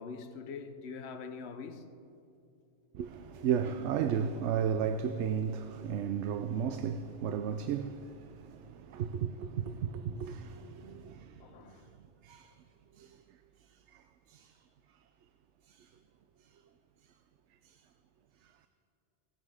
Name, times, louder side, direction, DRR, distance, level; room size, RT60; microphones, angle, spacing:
voice 1, 0.0-1.9 6.6-6.8 11.4-11.8, left 5 dB, 70° left, 1.0 m, -44 dB
voice 2, 2.9-11.4 12.2-12.5 13.0-13.2 13.9-14.0 14.3-14.5 15.7-15.8 17.6-17.7, right 7 dB, 85° right, 0.9 m, -34 dB
17.0 x 13.5 x 4.9 m
omnidirectional pair, 1.2 m